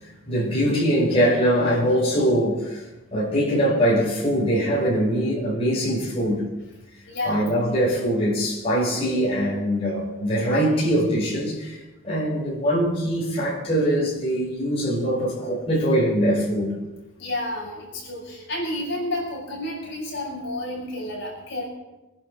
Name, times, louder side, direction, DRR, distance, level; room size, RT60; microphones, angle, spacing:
voice 1, 0.3-2.8 3.1-6.4 7.2-11.8 12.0-16.7, equal, 25° left, 5.8 m, -22 dB
voice 2, 7.1-7.5 17.2-21.7, left 1 dB, 50° left, 6.0 m, -30 dB
23.5 x 11.0 x 4.2 m
head